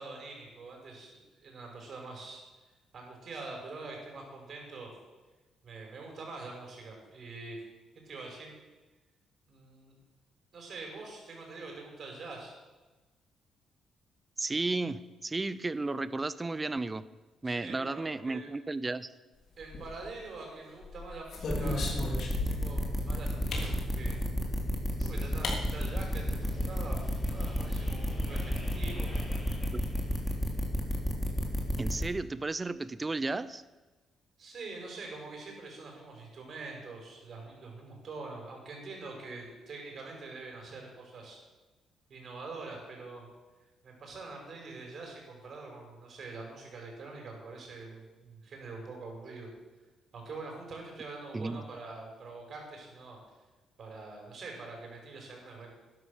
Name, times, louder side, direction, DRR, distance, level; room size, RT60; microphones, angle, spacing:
voice 1, 0.0-2.4 2.9-4.9 5.6-7.6 8.1-8.6 9.5-9.9 10.5-12.5 17.4-18.5 19.6-24.2 25.0-29.1 34.4-41.4 42.1-43.3 43.8-49.5 50.1-53.2 53.8-55.7, right 3 dB, 55° right, 1 dB, 5.4 m, -44 dB
voice 2, 14.4-17.0 17.4-19.1 29.7-29.8 31.8-33.6 51.3-51.6, right 3 dB, 20° right, 16 dB, 0.7 m, -33 dB
sound 1, 19.6-20.3 20.8-22.8 23.5-23.8 24.9-25.0 25.4-25.6 25.9-26.0 26.3-26.7, left 3 dB, 60° left, 3.3 m, -36 dB
sound 2, 21.5-32.0, equal, ahead, 3.3 m, -31 dB
sound 3, 25.0-30.6, left 2 dB, 30° left, 4.0 m, -50 dB
12.5 x 11.0 x 6.6 m, 1.2 s
cardioid pair, 90°, 0 cm